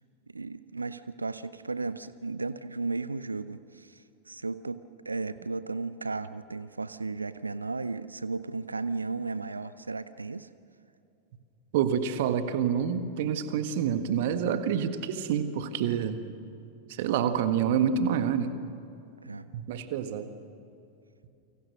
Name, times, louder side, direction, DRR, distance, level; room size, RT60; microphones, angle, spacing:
voice 1, 0.3-10.5 19.2-19.5, right 3 dB, 80° right, 15 dB, 0.6 m, -35 dB
voice 2, 11.7-16.2 16.9-18.6 19.5-20.3, right 8 dB, 50° right, 9 dB, 1.7 m, -27 dB
29.0 x 24.5 x 6.4 m, 2.7 s
figure-of-eight pair, 90°, 0 cm